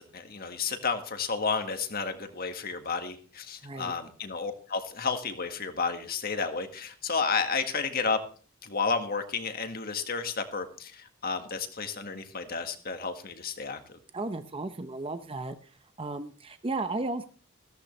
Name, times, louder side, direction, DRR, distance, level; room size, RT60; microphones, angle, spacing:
voice 1, 0.0-8.2 8.6-14.0, left 5 dB, 45° left, 7 dB, 1.7 m, -32 dB
voice 2, 3.6-3.9 14.1-15.6 16.0-17.2, right 2 dB, 25° right, 9 dB, 0.8 m, -34 dB
14.5 x 14.0 x 3.3 m, 0.39 s
head